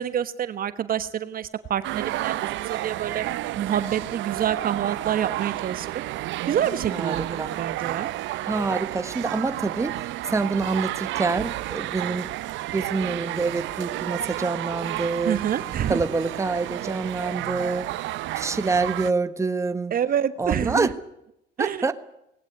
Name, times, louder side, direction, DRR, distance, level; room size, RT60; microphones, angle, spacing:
voice 1, 0.0-3.3 3.6-6.0 6.5-8.1 15.3-16.0 19.9-20.9 21.6-21.9, right 9 dB, 45° right, 13 dB, 1.3 m, -27 dB
sound 1, 1.8-19.1, right 16 dB, 65° right, 0.9 m, -31 dB
voice 2, 6.9-7.5 8.4-12.3 12.7-15.4 15.9-17.9 18.3-19.9 20.4-20.9 21.6-21.9, right 3 dB, 15° right, 11 dB, 1.3 m, -26 dB
19.5 x 17.5 x 9.8 m, 0.81 s
cardioid pair, 105°, 20 cm